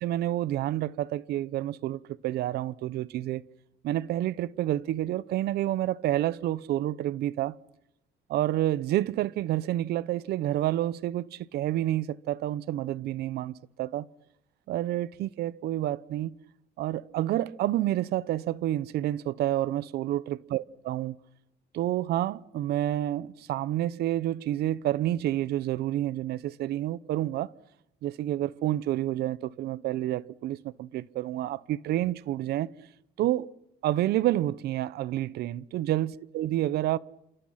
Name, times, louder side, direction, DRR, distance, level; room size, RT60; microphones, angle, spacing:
voice 1, 0.0-3.4 3.8-7.6 8.3-14.1 14.7-16.4 16.8-21.2 21.7-27.5 28.0-32.7 33.2-33.5 33.8-37.0, right 13 dB, 75° right, 0.9 m, -29 dB
29.5 x 28.5 x 5.8 m
cardioid pair, 110°, 17 cm